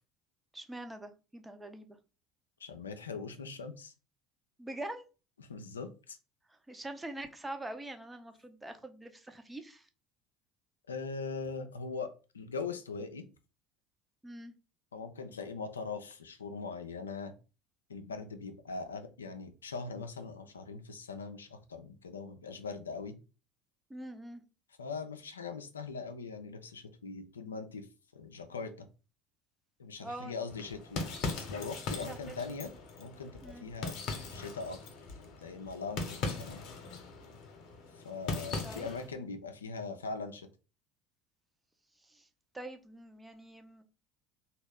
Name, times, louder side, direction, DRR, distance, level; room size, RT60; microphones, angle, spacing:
voice 1, 0.5-2.0 4.6-5.0 6.5-9.9 14.2-14.5 23.9-24.4 30.0-30.3 31.9-32.4 33.4-33.7 38.6-38.9 42.0-42.3 42.5-43.8, right 1 dB, 10° right, 0.6 m, -44 dB
voice 2, 2.6-3.9 5.4-6.2 10.9-13.2 14.9-17.3 17.9-23.2 24.8-27.9 28.1-28.9 29.8-31.0 31.3-32.7 33.0-34.0 34.3-34.8 35.2-36.6 38.0-40.5, left 4 dB, 85° left, 0.4 m, -41 dB
sound 1, 30.5-39.1, left 3 dB, 55° left, 0.9 m, -40 dB
3.0 x 2.4 x 3.4 m
hypercardioid pair, 65°, 0 cm